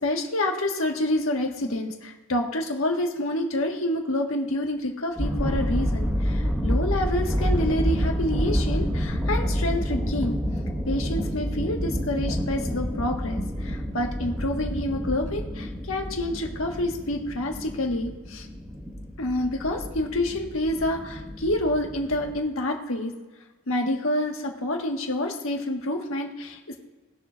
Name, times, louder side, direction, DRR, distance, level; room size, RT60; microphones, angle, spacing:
voice 1, 0.0-10.4 10.9-18.5 19.2-23.1 23.7-26.8, left 1 dB, 75° left, 1 dB, 1.5 m, -28 dB
sound 1, 5.2-22.4, equal, 5° right, 1.4 m, -28 dB
20.0 x 6.9 x 2.5 m, 1.2 s
head